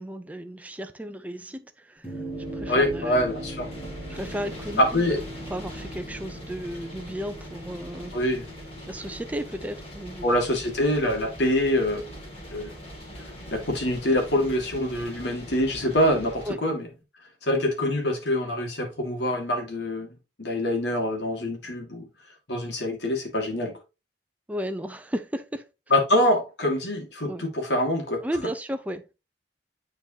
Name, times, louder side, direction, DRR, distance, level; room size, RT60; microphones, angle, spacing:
voice 1, 0.0-2.1 2.5-3.2 4.1-5.2 5.5-8.1 8.9-10.3 16.5-16.6 24.5-25.7 27.2-27.4 28.2-29.1, equal, 10° right, 0.5 m, -34 dB
sound 1, 2.0-16.6, equal, 10° left, 1.8 m, -42 dB
sound 2, 2.3-16.5, equal, 35° left, 2.1 m, -42 dB
voice 2, 2.7-3.7 4.8-5.2 8.1-8.5 10.2-12.1 12.5-12.7 13.5-16.9 17.4-22.1 22.5-23.8 25.9-28.2, left 1 dB, 75° left, 1.9 m, -25 dB
9.7 x 3.9 x 2.8 m
head